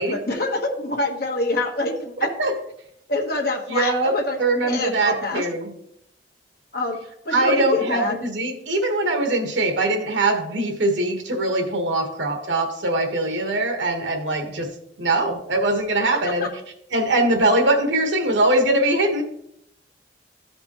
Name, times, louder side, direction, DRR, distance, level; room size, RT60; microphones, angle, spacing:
voice 1, 0.0-2.3 3.1-4.4 4.6-5.4 6.7-7.0 7.2-8.2 16.4-16.5, left 2 dB, 55° left, 2 dB, 1.4 m, -26 dB
voice 2, 3.7-4.1 4.4-5.7 7.3-14.7 15.0-16.5 16.9-19.2, right 2 dB, 80° right, 4 dB, 1.4 m, -22 dB
14.0 x 5.2 x 3.1 m, 0.74 s
head